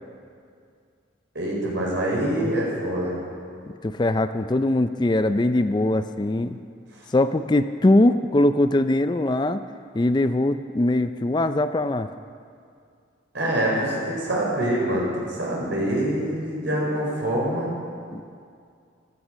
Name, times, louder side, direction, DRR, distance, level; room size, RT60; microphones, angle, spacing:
voice 1, 1.3-3.1 13.3-15.0 15.4-17.8, right 1 dB, 75° right, -3 dB, 4.9 m, -25 dB
voice 2, 3.7-6.6 7.1-9.6 9.9-12.1 18.1-18.2, left 1 dB, 25° left, 10 dB, 0.4 m, -21 dB
15.0 x 14.0 x 6.4 m, 2.3 s
head